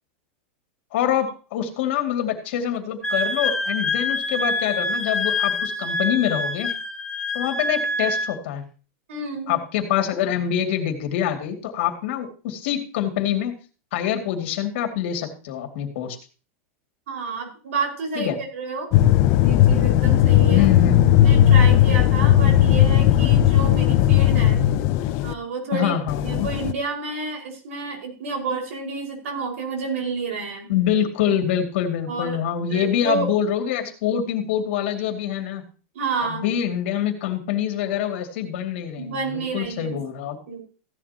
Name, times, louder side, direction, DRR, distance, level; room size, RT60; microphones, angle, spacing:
voice 1, 0.9-6.7 7.3-8.6 9.5-13.5 13.9-16.2 18.2-18.4 20.5-21.3 25.7-26.5 30.7-35.6 36.2-40.4, left 10 dB, 55° left, 5 dB, 2.3 m, -25 dB
Wind instrument woodwind instrument, 3.0-8.3, left 2 dB, 10° left, 1.0 m, -26 dB
voice 2, 9.1-9.6 17.1-18.9 19.3-20.7 21.2-24.6 25.2-30.7 32.1-32.4 32.7-33.3 35.9-36.4 39.0-40.0 40.5-40.6, right 4 dB, 85° right, 1 dB, 5.0 m, -29 dB
sound 1, 18.9-25.3 26.1-26.7, left 12 dB, 35° left, 0.6 m, -16 dB
15.5 x 11.0 x 2.9 m, 0.36 s
supercardioid pair, 170°, 7 cm